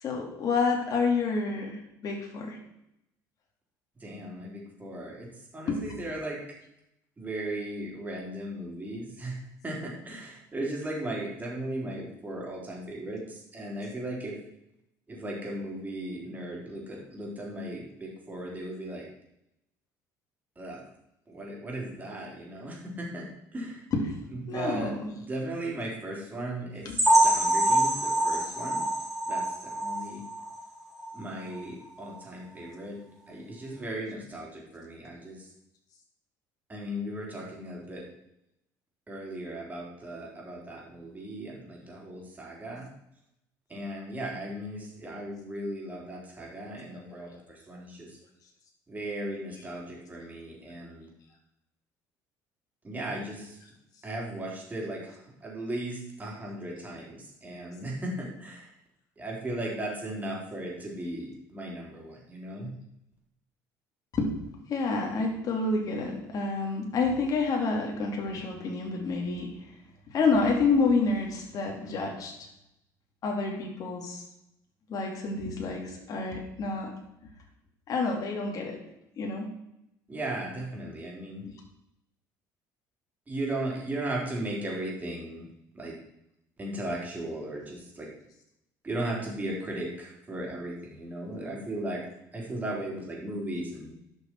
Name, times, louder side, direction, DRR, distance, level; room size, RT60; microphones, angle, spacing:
voice 1, 0.0-2.6 5.7-5.8 23.9-24.1 24.5-25.1 26.8-27.0 64.1-64.3 64.7-69.5 70.1-72.3 73.2-74.2 74.9-76.9 77.9-78.8 79.2-79.5, left 4 dB, 50° left, 0 dB, 2.7 m, -28 dB
voice 2, 4.0-5.3 5.5-6.4 7.2-9.4 9.6-14.4 15.1-19.1 20.6-20.8 21.3-23.8 24.3-24.9 25.3-28.9 29.3-30.2 31.1-33.0 33.3-35.5 36.7-38.1 39.1-42.9 43.7-48.2 48.9-51.1 52.8-53.6 54.0-58.7 59.2-62.7 80.1-81.4 83.3-85.5 85.7-85.9 86.6-88.1 88.8-92.0 92.3-93.9, right 1 dB, 20° right, -3 dB, 3.8 m, -36 dB
sound 1, 27.0-30.6 31.0-31.2 31.5-31.6 32.1-32.2, right 1 dB, ahead, 3.3 m, -25 dB
11.0 x 6.4 x 4.6 m, 0.82 s
cardioid pair, 105°, 8 cm